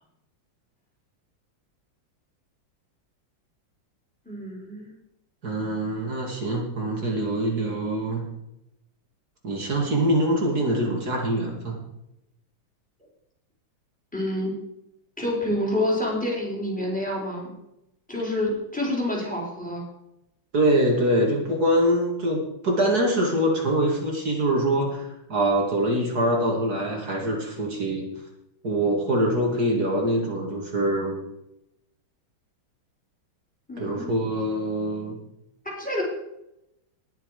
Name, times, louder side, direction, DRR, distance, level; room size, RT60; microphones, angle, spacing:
voice 1, 4.3-4.9 14.1-14.5 15.2-17.5 18.1-19.8 33.7-34.1 35.8-36.0, left 1 dB, 5° left, -2 dB, 4.5 m, -28 dB
voice 2, 5.4-8.2 9.4-11.8 20.5-28.1 28.6-31.2 33.8-35.1, right 1 dB, 50° right, 0 dB, 2.9 m, -24 dB
20.0 x 6.8 x 5.1 m, 0.84 s
omnidirectional pair, 2.2 m